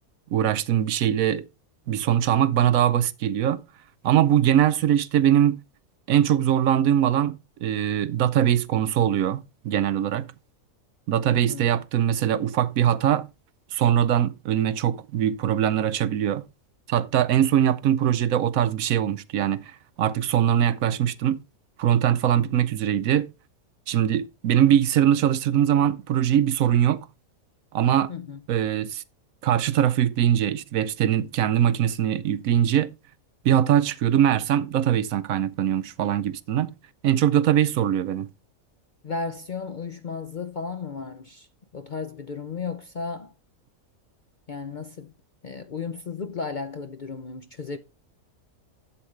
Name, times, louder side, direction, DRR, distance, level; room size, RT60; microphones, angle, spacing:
voice 1, 0.3-1.5 1.9-3.6 4.0-5.6 6.1-7.4 7.6-10.3 11.1-13.3 13.7-16.4 16.9-21.4 21.8-23.3 23.9-27.1 27.7-28.1 28.5-29.0 29.4-32.9 33.4-36.7 37.0-38.3, right 10 dB, 75° right, 1.0 m, -22 dB
voice 2, 11.3-11.7 28.1-28.4 39.0-41.5 41.7-43.3 44.5-45.1 45.4-47.8, left 5 dB, 50° left, 0.6 m, -34 dB
11.5 x 7.9 x 3.2 m
omnidirectional pair, 1.5 m